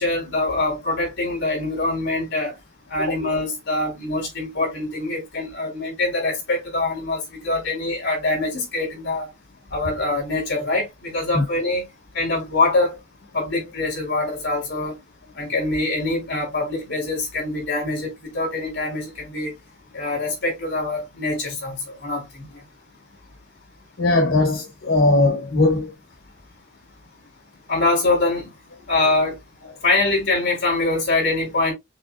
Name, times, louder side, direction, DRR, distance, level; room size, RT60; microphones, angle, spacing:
voice 1, 0.0-2.5 2.9-9.3 9.7-11.8 12.1-13.0 13.3-15.0 15.3-19.5 19.9-22.6 27.7-28.5 28.9-29.4 29.8-31.7, left 2 dB, 60° left, 3.6 m, -24 dB
voice 2, 24.0-25.9, left 2 dB, 80° left, 1.5 m, -19 dB
6.6 x 3.2 x 2.3 m
head